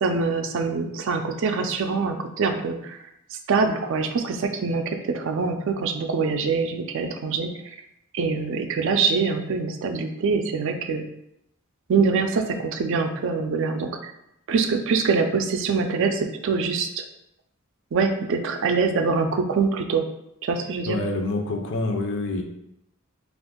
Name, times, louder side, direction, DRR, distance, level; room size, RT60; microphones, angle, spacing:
voice 1, 0.0-3.0 3.3-7.8 8.1-11.1 11.9-14.1 14.5-17.0 17.9-20.1 20.4-21.0, right 4 dB, 65° right, 6 dB, 0.4 m, -24 dB
voice 2, 20.9-22.4, left 2 dB, 60° left, 3 dB, 0.5 m, -26 dB
2.6 x 2.4 x 3.6 m, 0.80 s
head